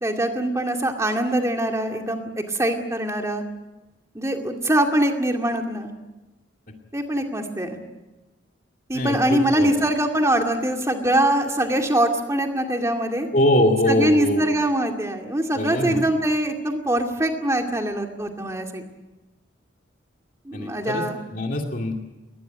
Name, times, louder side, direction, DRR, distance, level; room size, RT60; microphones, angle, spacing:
voice 1, 0.0-3.4 4.1-5.9 6.9-7.8 8.9-13.3 13.9-18.8 20.4-21.2, right 1 dB, 15° right, 3 dB, 2.3 m, -23 dB
voice 2, 8.9-9.7 13.3-14.4 15.5-16.0 20.5-21.0 21.3-21.9, left 1 dB, 45° left, 2 dB, 2.4 m, -22 dB
22.0 x 19.0 x 9.2 m, 1.1 s
head